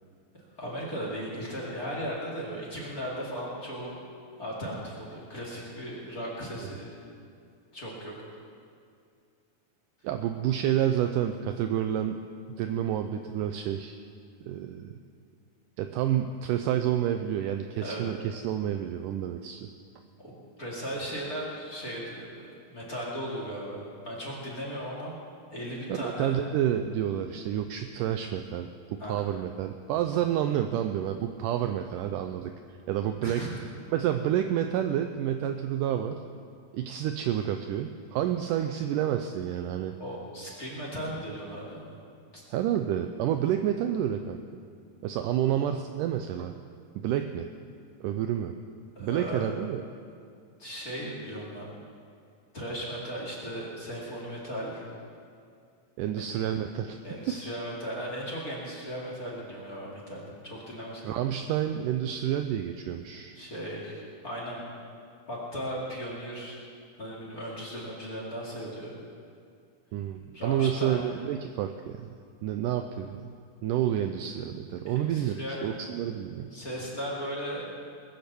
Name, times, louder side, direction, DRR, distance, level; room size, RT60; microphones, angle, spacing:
voice 1, 0.6-4.0 4.4-6.9 7.7-8.1 17.8-18.1 20.2-20.3 20.6-22.2 22.7-25.2 25.5-26.3 29.0-29.2 33.2-33.5 40.0-42.0 42.3-42.4 49.0-49.5 50.6-51.7 52.5-54.8 56.1-56.3 57.0-61.2 63.3-64.6 65.3-66.5 67.0-68.9 70.3-71.0 74.9-75.7 76.5-77.6, equal, 30° left, -4 dB, 2.4 m, -36 dB
voice 2, 10.0-12.2 12.6-14.0 14.4-15.0 15.8-19.7 25.9-28.7 29.0-32.5 32.9-33.5 33.9-36.2 36.7-39.9 42.5-44.4 45.0-46.5 46.9-47.5 48.0-48.5 49.0-49.8 56.0-57.0 57.3-57.4 61.0-63.4 69.9-72.2 72.4-73.3 73.6-76.5, right 10 dB, 90° right, 7 dB, 1.8 m, -29 dB
20.5 x 8.1 x 7.0 m, 2.3 s
omnidirectional pair, 4.3 m